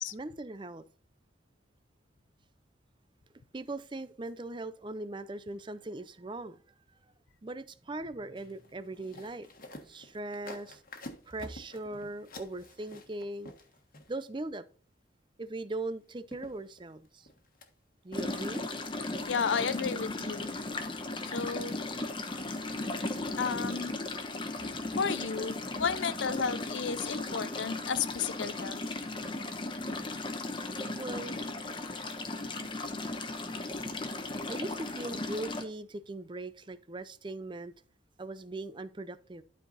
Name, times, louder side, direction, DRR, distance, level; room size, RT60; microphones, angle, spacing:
voice 1, 0.1-0.8 3.5-6.6 7.4-9.5 9.9-10.8 11.3-13.5 14.1-14.6 15.4-17.3 18.0-18.6 31.0-31.4 34.5-37.7 38.2-39.4, right 2 dB, 25° right, 0.5 m, -39 dB
sound 1, 8.4-14.4 15.9-16.0 16.3-17.7 18.1-18.7 19.0-19.4 19.9-20.2 20.5-21.2 21.6-22.1 22.4-22.9 23.3-23.5 23.8-23.9, left 1 dB, 45° left, 1.4 m, -50 dB
sound 2, 18.1-35.6, left 2 dB, 25° left, 0.9 m, -36 dB
voice 2, 19.3-20.5 21.3-21.8 23.4-23.9 25.0-28.8, left 6 dB, 75° left, 0.5 m, -32 dB
11.5 x 4.7 x 4.0 m
head